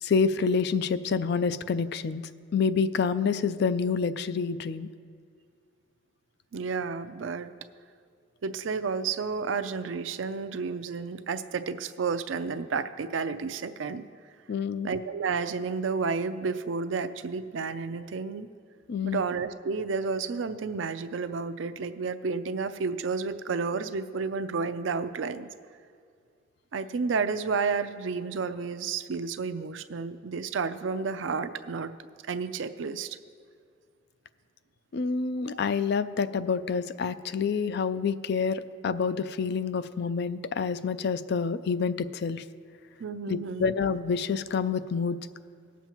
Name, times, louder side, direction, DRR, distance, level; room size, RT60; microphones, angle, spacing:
voice 1, 0.0-2.2 2.5-4.9 14.5-14.9 18.9-19.2 34.9-42.4 43.3-45.2, left 5 dB, 55° left, 13 dB, 0.4 m, -27 dB
voice 2, 6.5-7.5 8.4-14.1 14.8-18.5 19.0-25.5 26.7-31.9 32.3-33.2 35.5-35.6 43.0-43.6, right 5 dB, 70° right, 11 dB, 0.5 m, -31 dB
19.5 x 7.1 x 3.0 m, 2.1 s
head